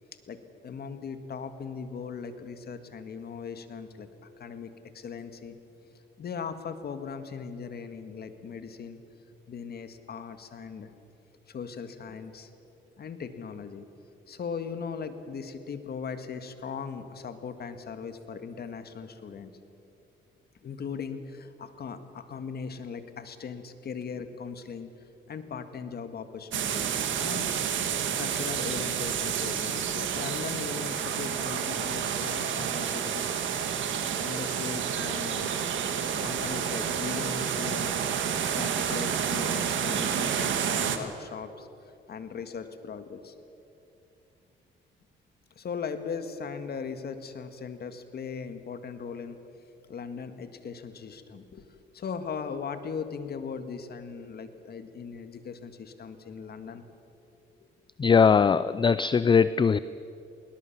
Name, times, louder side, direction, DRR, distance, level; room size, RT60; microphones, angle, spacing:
voice 1, 0.3-5.6 6.2-9.0 9.5-10.9 11.5-12.5 13.0-13.9 14.3-19.5 20.6-27.5 28.1-33.2 34.2-35.5 36.2-37.9 38.5-43.3 45.6-49.4 49.9-51.6 51.9-56.8 57.6-57.7, left 6 dB, 55° left, 9 dB, 1.8 m, -39 dB
sound 1, 26.5-41.0, right 8 dB, 75° right, 1.7 m, -29 dB
voice 2, 58.0-59.8, left 6 dB, 25° left, 16 dB, 0.4 m, -20 dB
21.0 x 19.5 x 7.3 m, 2.7 s
cardioid pair, 90°, 20 cm